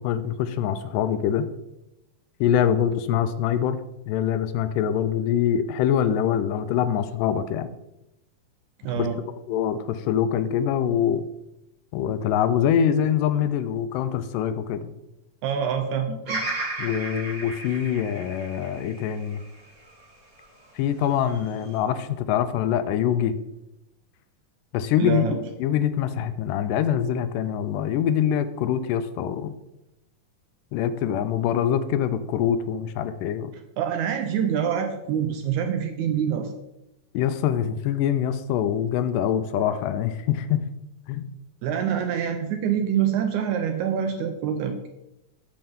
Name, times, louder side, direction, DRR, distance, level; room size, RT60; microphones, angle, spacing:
voice 1, 0.0-1.5 2.4-3.8 4.1-7.7 9.0-9.1 9.5-11.2 11.9-14.9 16.8-19.4 20.8-23.4 24.7-29.5 30.7-33.5 37.1-40.6 41.1-41.3, left 9 dB, 80° left, 11 dB, 2.1 m, -24 dB
voice 2, 8.8-9.2 15.4-16.4 25.0-25.4 33.8-36.5 41.6-44.9, right 8 dB, 75° right, 5 dB, 1.8 m, -26 dB
Bird vocalization bird call bird song, 16.3-20.5 21.0-21.8, right 2 dB, 30° right, 2.9 m, -34 dB
7.7 x 6.9 x 3.6 m, 0.90 s
omnidirectional pair, 3.9 m